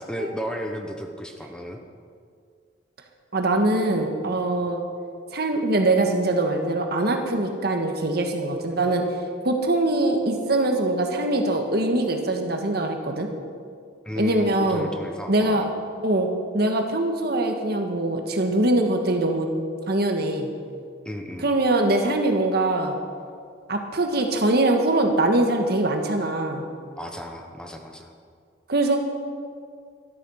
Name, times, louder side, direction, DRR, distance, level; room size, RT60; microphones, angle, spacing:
voice 1, 0.0-1.8 14.0-15.7 21.0-21.5 27.0-28.1, equal, 5° left, 3 dB, 1.0 m, -34 dB
voice 2, 3.3-4.8 5.3-9.0 9.4-13.3 14.2-14.9 15.3-15.6 16.0-16.3 16.5-19.5 19.9-20.5 21.4-23.0 23.7-26.6 28.7-29.0, right 2 dB, 60° right, 4 dB, 1.6 m, -22 dB
12.5 x 12.5 x 5.7 m, 2.2 s
head